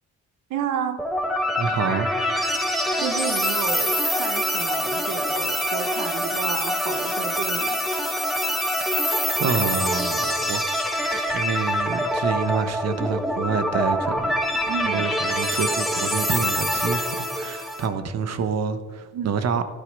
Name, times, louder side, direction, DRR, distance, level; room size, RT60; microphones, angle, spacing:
voice 1, 0.5-1.0 3.0-7.8 14.7-15.0 19.1-19.4, right 8 dB, 90° right, 7 dB, 1.3 m, -31 dB
sound 1, 1.0-17.9, equal, ahead, 1.9 m, -25 dB
voice 2, 1.6-2.1 8.8-8.9 9.4-10.6 11.1-14.4 14.8-19.6, right 6 dB, 55° right, 11 dB, 1.2 m, -27 dB
12.5 x 11.5 x 5.4 m, 1.4 s
cardioid pair, 90°, 30 cm